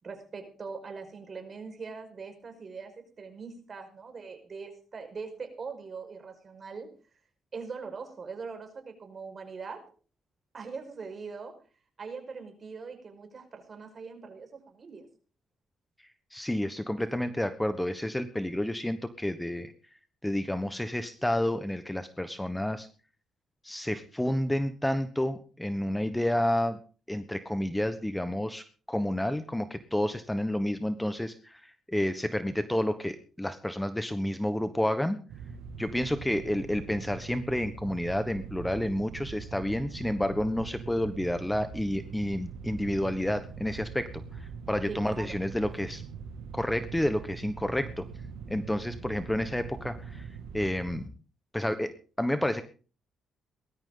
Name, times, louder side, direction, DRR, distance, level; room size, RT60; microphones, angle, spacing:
voice 1, 0.0-2.9 3.2-6.9 7.5-9.9 10.5-11.6 12.0-15.1 44.9-45.3, right 5 dB, 40° right, 6 dB, 5.4 m, -41 dB
voice 2, 16.3-19.7 20.2-22.9 23.6-26.8 27.1-35.2 35.8-46.0 46.5-48.1 48.5-50.3 50.5-51.1 51.5-52.6, left 1 dB, 5° left, 11 dB, 1.2 m, -30 dB
sound 1, 35.3-51.1, right 6 dB, 90° right, 2.1 m, -42 dB
19.5 x 13.0 x 3.9 m, 0.37 s
cardioid pair, 90°, 0 cm